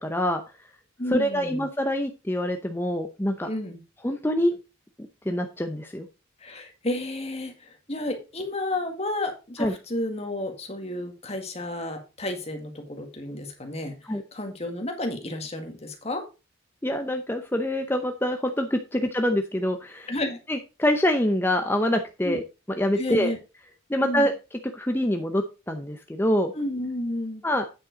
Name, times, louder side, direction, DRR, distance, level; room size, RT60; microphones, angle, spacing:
voice 1, 0.0-0.4 1.1-3.5 4.0-4.5 5.2-6.1 9.6-9.7 14.1-14.2 16.8-20.1 20.5-22.4 22.8-23.3 23.9-24.3 24.7-26.5 27.4-27.6, left 1 dB, 10° left, 5 dB, 0.7 m, -25 dB
voice 2, 1.0-1.7 3.4-3.8 6.4-14.0 14.3-16.2 20.1-20.4 22.2-22.4 23.0-23.4 24.0-24.3 26.5-27.4, left 1 dB, 30° left, 5 dB, 1.9 m, -31 dB
8.9 x 7.6 x 3.9 m, 0.29 s
head